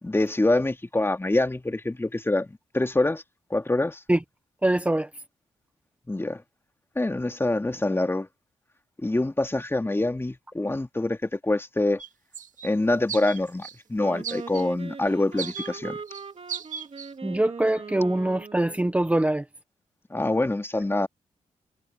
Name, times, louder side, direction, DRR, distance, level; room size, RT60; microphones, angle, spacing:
voice 1, 0.0-3.2 3.5-4.0 6.1-6.4 7.0-8.3 9.0-12.0 12.6-16.0 20.1-21.1, left 2 dB, 20° left, 2.3 m, -25 dB
voice 2, 4.6-5.1 17.2-19.4, right 1 dB, 10° right, 1.0 m, -23 dB
sound 1, 12.0-12.1 12.3-12.7 13.1-13.8 14.2-14.6 15.4-15.7 16.1-16.2 16.5-17.1, right 7 dB, 70° right, 2.0 m, -36 dB
Wind instrument woodwind instrument, 14.0-19.0, right 5 dB, 50° right, 4.0 m, -40 dB
cardioid pair, 60°, 13 cm